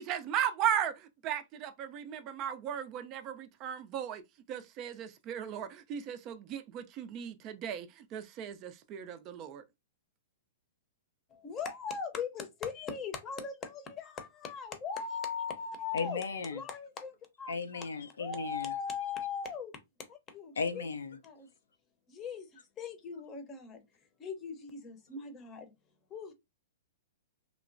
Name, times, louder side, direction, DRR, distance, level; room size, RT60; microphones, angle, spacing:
voice 1, 0.0-4.2 4.5-9.6, right 9 dB, 35° right, 0.4 m, -36 dB
voice 2, 11.3-16.2 16.5-17.1 17.4-17.9 18.2-19.7 20.1-20.8 21.2-21.5 22.1-23.8 24.2-25.7 26.1-26.3, left 6 dB, 25° left, 0.7 m, -39 dB
voice 3, 15.9-16.6 17.5-18.7 20.6-21.2, left 4 dB, 85° left, 0.5 m, -35 dB
3.0 x 2.0 x 2.5 m
hypercardioid pair, 130°, 0 cm